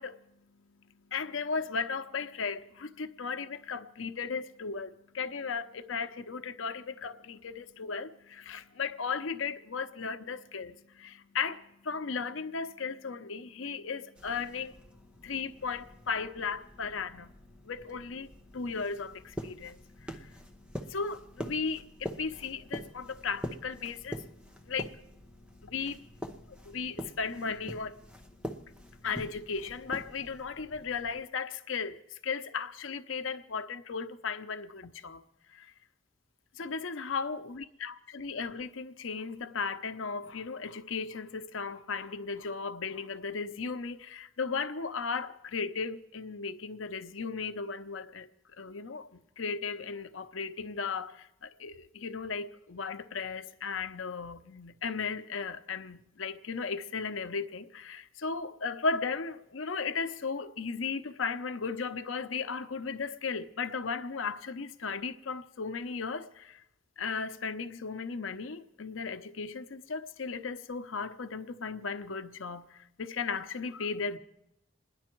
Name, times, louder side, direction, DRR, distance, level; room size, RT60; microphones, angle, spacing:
voice 1, 0.0-17.3 17.6-35.2 35.5-35.7 36.5-48.3 48.6-66.6 67.0-74.2, left 5 dB, 90° left, 0.7 m, -36 dB
sound 1, 14.2-31.2, equal, 5° right, 0.8 m, -45 dB
28.0 x 10.5 x 4.5 m
head